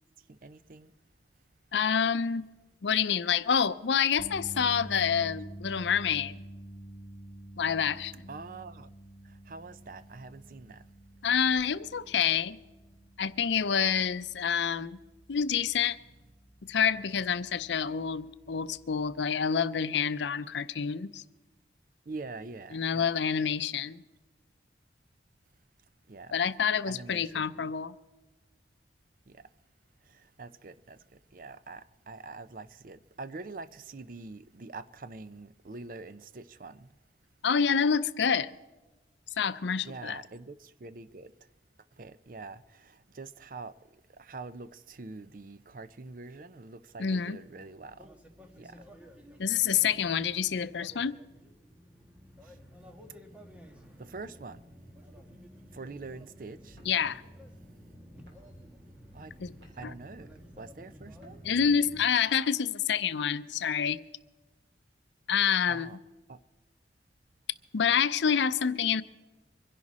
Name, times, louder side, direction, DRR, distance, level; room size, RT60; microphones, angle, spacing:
voice 1, 0.3-0.9 8.3-8.9 9.5-10.8 22.1-23.1 26.1-26.4 26.9-27.6 29.3-29.5 30.1-31.0 31.3-36.9 39.8-41.3 42.0-43.8 44.2-48.1 48.5-48.9 54.0-54.7 55.7-56.8 59.1-59.4 59.8-61.4 65.7-66.0 66.3-66.4, right 3 dB, 50° right, 0.6 m, -45 dB
voice 2, 1.7-2.5 2.8-6.4 7.6-8.1 11.2-12.6 13.2-15.0 15.3-16.0 16.7-21.2 22.7-24.0 26.3-28.0 37.4-38.5 39.4-40.2 47.0-47.4 49.4-51.2 56.9-57.2 59.4-59.5 61.4-64.0 65.3-66.0 67.7-69.0, left 7 dB, 85° left, 0.5 m, -27 dB
sound 1, 4.2-16.4 16.8-17.0 19.2-19.3, right 1 dB, 20° left, 2.0 m, -48 dB
sound 2, 47.5-62.0, equal, 5° right, 1.3 m, -52 dB
sound 3, 56.7-57.1 57.8-57.9 58.3-58.7 59.3-60.1 61.1-61.7, equal, 85° right, 4.5 m, -62 dB
24.5 x 11.0 x 4.2 m
head